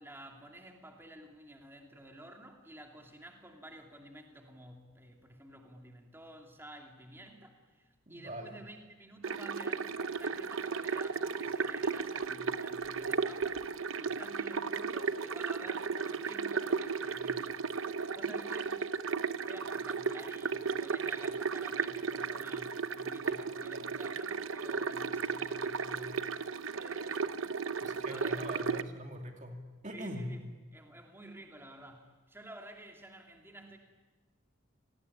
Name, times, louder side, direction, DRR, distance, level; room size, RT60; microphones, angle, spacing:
voice 1, 0.0-18.8 19.4-26.4 26.7-27.4 28.1-28.5 29.9-30.4 30.7-33.8, right 1 dB, 10° right, 2 dB, 2.6 m, -51 dB
voice 2, 8.1-8.6 27.8-29.6 29.8-30.3, equal, 35° right, 3 dB, 2.5 m, -42 dB
sound 1, 9.2-28.8, right 5 dB, 80° right, 0.9 m, -35 dB
28.0 x 19.0 x 9.9 m, 1.3 s
head